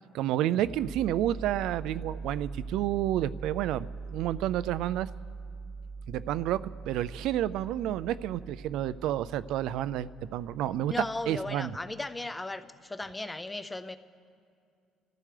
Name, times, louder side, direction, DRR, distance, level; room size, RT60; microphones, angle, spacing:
voice 1, 0.1-5.1 6.1-6.6 6.9-10.9 11.3-11.7, right 12 dB, 65° right, 15 dB, 0.3 m, -30 dB
sound 1, 0.5-11.9, right 4 dB, 35° right, 0.9 m, -42 dB
voice 2, 10.9-14.0, left 2 dB, 10° left, 11 dB, 0.4 m, -36 dB
29.5 x 14.5 x 3.3 m, 2.4 s
cardioid pair, 165°, 0 cm